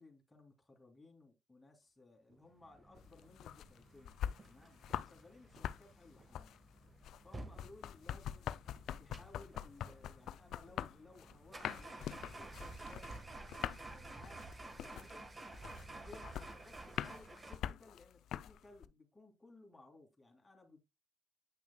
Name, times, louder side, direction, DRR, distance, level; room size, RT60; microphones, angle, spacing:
voice 1, 0.0-6.6 7.2-8.5 9.0-13.3 13.8-15.3 15.9-20.8, left 2 dB, 15° left, 2.5 m, -60 dB
sound 1, 1.8-1.9 2.3-2.6 2.9-3.2 3.5-3.8 4.2-4.5 4.9-5.2 5.6-5.8 6.2-6.5 6.9-7.2 7.5-7.7 8.1-8.3 8.8-9.0 9.4-9.6 10.0-10.3 10.7-10.9 11.3-11.5 11.9-12.2 12.5-12.8 13.1-13.5 13.8-14.1 14.4-14.7 15.0-15.3 15.6-15.8 16.2-16.5 16.9-17.1 17.5-17.8, right 2 dB, 50° right, 3.4 m, -70 dB
sound 2, 2.6-17.6, right 2 dB, 25° right, 1.4 m, -52 dB
sound 3, 3.0-5.2 5.5-18.9, left 10 dB, 70° left, 0.3 m, -44 dB
8.9 x 5.9 x 2.2 m
supercardioid pair, 70°, 0 cm